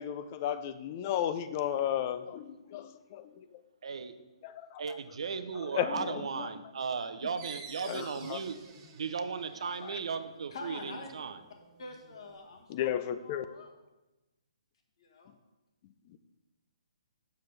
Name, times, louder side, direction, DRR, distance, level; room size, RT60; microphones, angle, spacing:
voice 1, 0.0-3.5 4.4-5.0 5.6-6.5 7.8-8.4 9.8-10.0 12.7-13.4 16.1-16.2, left 10 dB, 25° left, 12 dB, 0.3 m, -34 dB
voice 2, 3.8-4.1 4.8-8.6 9.0-11.4, right 5 dB, 70° right, 10 dB, 0.6 m, -36 dB
sound 1, 7.4-12.6, right 5 dB, 25° right, 0.8 m, -52 dB
voice 3, 10.5-11.1 11.8-13.7 15.0-15.3, left 3 dB, 55° left, 2 dB, 1.3 m, -46 dB
7.7 x 6.8 x 3.2 m, 1.1 s
hypercardioid pair, 165°, 3 cm